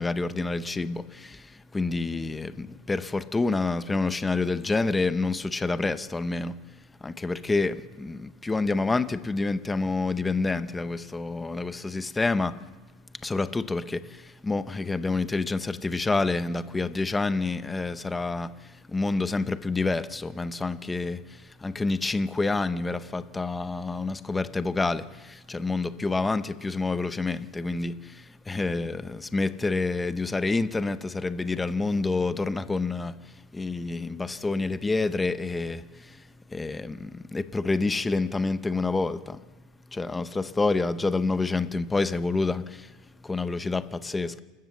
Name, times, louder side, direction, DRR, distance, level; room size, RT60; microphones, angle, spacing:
voice 1, 0.0-12.7 13.1-39.4 39.9-44.4, left 3 dB, 10° left, 0.6 m, -28 dB
28.0 x 13.5 x 7.2 m
supercardioid pair, 165°, 0 cm